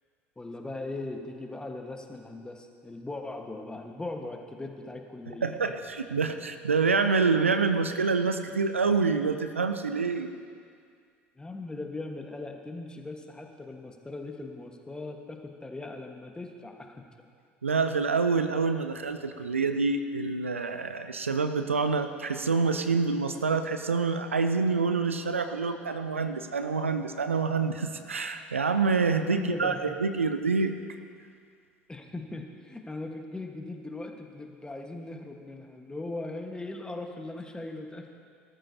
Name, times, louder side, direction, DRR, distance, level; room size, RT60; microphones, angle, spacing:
voice 1, 0.4-5.6 11.4-17.0 29.2-29.8 31.9-38.1, left 2 dB, 10° left, 3 dB, 1.4 m, -39 dB
voice 2, 5.4-10.3 17.6-30.7, right 4 dB, 85° right, 8 dB, 0.5 m, -27 dB
19.0 x 13.5 x 2.8 m, 2.2 s
figure-of-eight pair, 65°, 7 cm